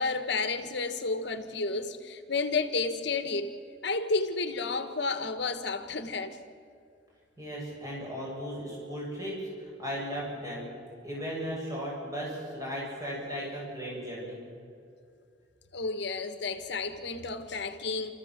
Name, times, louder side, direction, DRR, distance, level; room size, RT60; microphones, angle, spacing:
voice 1, 0.0-3.5 3.8-6.4 15.7-18.1, left 3 dB, 65° left, 9 dB, 1.4 m, -31 dB
voice 2, 7.4-10.8 11.0-14.4, equal, 20° right, -4 dB, 6.9 m, -36 dB
29.0 x 14.5 x 7.5 m, 2.3 s
head